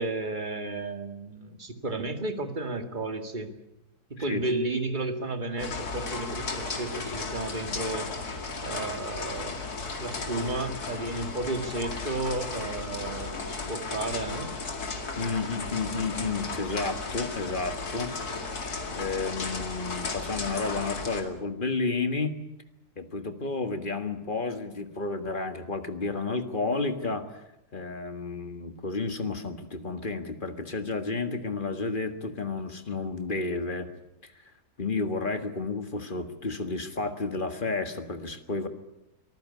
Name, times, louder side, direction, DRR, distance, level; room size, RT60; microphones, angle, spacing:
voice 1, 0.0-3.5 4.1-8.1 8.6-9.6 10.0-14.5, right 2 dB, 30° right, 7 dB, 2.1 m, -33 dB
sound 1, 5.6-21.2, left 4 dB, 70° left, 2.8 m, -35 dB
voice 2, 15.2-18.2 19.0-22.4 23.0-27.4 27.7-33.9 34.2-34.3 34.8-38.7, left 3 dB, 35° left, 8 dB, 1.7 m, -31 dB
24.0 x 14.5 x 9.6 m, 0.93 s
omnidirectional pair, 1.7 m